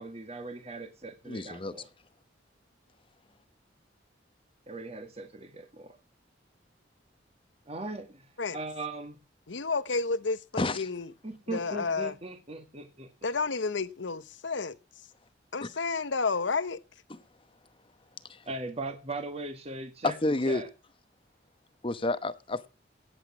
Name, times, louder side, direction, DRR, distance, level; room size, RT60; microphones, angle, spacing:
voice 1, 0.0-1.9 4.7-6.0 7.7-8.2 8.5-9.2 11.2-13.1 18.5-20.2 20.5-20.7, right 2 dB, 35° right, 1.8 m, -39 dB
voice 2, 1.3-1.7 10.6-10.9 15.6-15.7 17.1-17.2 18.3-18.5 20.0-20.6 21.8-22.7, left 2 dB, 30° left, 1.0 m, -30 dB
voice 3, 9.5-11.1 11.5-12.1 13.2-14.8 15.5-16.8, left 4 dB, 80° left, 0.9 m, -31 dB
17.5 x 8.2 x 6.0 m
head